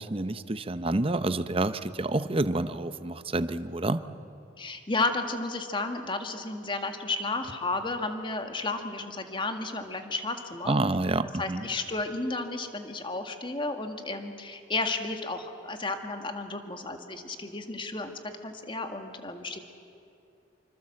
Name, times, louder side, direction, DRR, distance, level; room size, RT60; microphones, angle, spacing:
voice 1, 0.0-4.0 10.7-11.7, right 2 dB, 30° right, 12 dB, 0.8 m, -28 dB
voice 2, 4.6-10.8 11.4-18.1 18.4-19.6, left 3 dB, 25° left, 6 dB, 1.9 m, -32 dB
26.0 x 25.5 x 7.7 m, 2.7 s
head